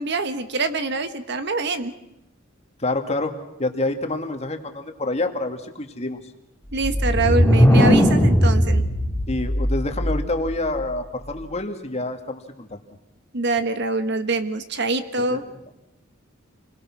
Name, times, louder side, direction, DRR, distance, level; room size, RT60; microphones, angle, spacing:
voice 1, 0.0-1.9 6.7-8.8 13.3-15.4, right 3 dB, 60° right, 9 dB, 1.5 m, -24 dB
voice 2, 2.8-6.2 9.3-12.8 15.3-15.7, left 2 dB, 35° left, 5 dB, 2.2 m, -27 dB
sound 1, 6.7-10.5, equal, 10° left, 2.2 m, -18 dB
28.5 x 22.0 x 6.2 m, 0.88 s
head